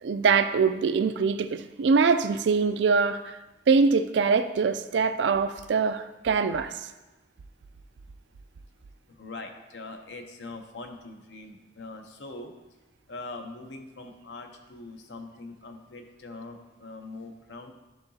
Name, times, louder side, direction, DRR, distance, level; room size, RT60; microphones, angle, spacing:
voice 1, 0.0-3.4 3.7-6.8, right 5 dB, 75° right, 10 dB, 0.4 m, -23 dB
voice 2, 9.1-12.5 13.1-17.7, left 2 dB, 80° left, 5 dB, 0.7 m, -42 dB
11.0 x 3.8 x 2.8 m, 1.1 s
head